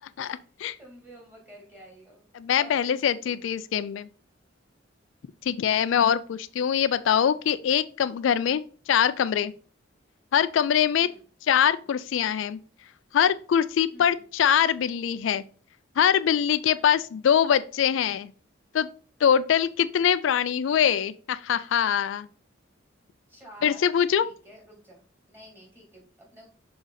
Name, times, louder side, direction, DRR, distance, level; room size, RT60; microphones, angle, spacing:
voice 1, 0.8-3.4 11.0-11.2 13.9-14.2 16.7-16.9 23.3-23.9 24.2-25.0 25.3-26.5, right 1 dB, 10° right, 2.7 m, -50 dB
voice 2, 2.3-4.1 5.4-9.5 10.3-11.1 11.4-12.6 13.1-15.4 16.0-18.3 18.7-18.9 19.2-22.3 23.6-24.3, left 8 dB, 80° left, 0.3 m, -23 dB
6.3 x 3.8 x 3.9 m
head